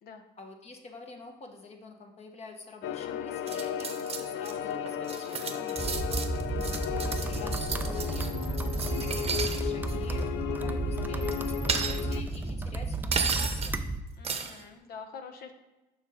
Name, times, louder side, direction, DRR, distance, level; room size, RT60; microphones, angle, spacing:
voice 1, 0.4-6.2 6.9-8.3 8.9-13.8, left 3 dB, 40° left, 3 dB, 1.2 m, -47 dB
sound 1, 2.8-12.2, left 9 dB, 90° left, 0.4 m, -35 dB
sound 2, 3.5-4.5 4.9-9.6 9.9-10.2 11.3-12.4 13.1-13.7 14.2-14.6, right 6 dB, 35° right, 0.9 m, -33 dB
sound 3, 5.8-14.0, right 2 dB, 10° right, 0.4 m, -33 dB
voice 2, 14.2-15.5, left 5 dB, 65° left, 7 dB, 0.9 m, -46 dB
7.2 x 5.7 x 3.6 m, 1.0 s
cardioid pair, 110°, 17 cm